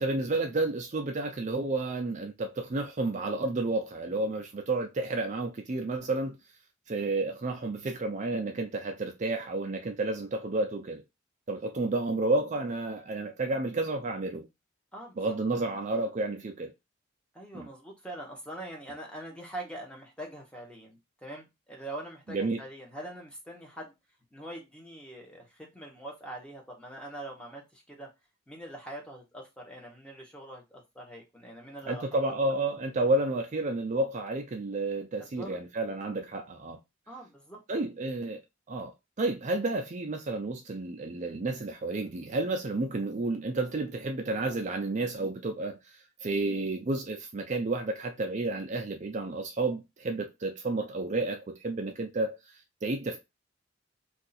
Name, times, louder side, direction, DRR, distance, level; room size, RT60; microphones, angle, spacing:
voice 1, 0.0-6.4 6.9-11.0 11.5-14.5 15.2-16.7 17.5-17.7 22.3-22.6 31.9-36.8 37.7-38.4 38.7-52.4 52.8-53.2, right 2 dB, 40° right, 0.5 m, -31 dB
voice 2, 17.3-23.9 24.3-28.1 28.5-32.3 35.2-35.6 37.1-37.6, right 1 dB, 5° left, 1.0 m, -43 dB
2.7 x 2.5 x 4.0 m
head